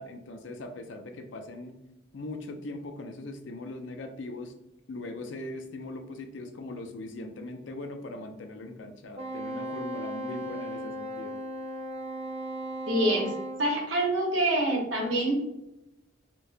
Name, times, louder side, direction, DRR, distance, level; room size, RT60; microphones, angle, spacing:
voice 1, 0.0-1.8 2.1-4.5 4.9-11.4, left 2 dB, 75° left, 6 dB, 0.5 m, -40 dB
Wind instrument woodwind instrument, 9.1-13.6, right 1 dB, 30° right, 0.4 m, -36 dB
voice 2, 12.9-13.3 13.6-15.3, right 1 dB, 85° right, -2 dB, 1.2 m, -26 dB
4.4 x 2.1 x 2.7 m, 0.90 s
head